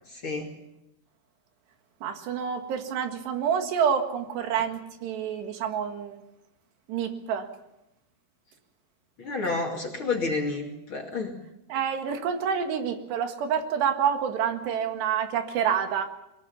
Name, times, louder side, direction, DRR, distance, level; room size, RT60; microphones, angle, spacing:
voice 1, 0.1-0.5 9.2-11.3, left 3 dB, 35° left, 1 dB, 2.5 m, -30 dB
voice 2, 2.0-6.2 6.9-7.5 11.7-16.1, right 7 dB, 90° right, 6 dB, 4.0 m, -28 dB
22.5 x 20.5 x 7.0 m, 0.87 s
omnidirectional pair, 4.8 m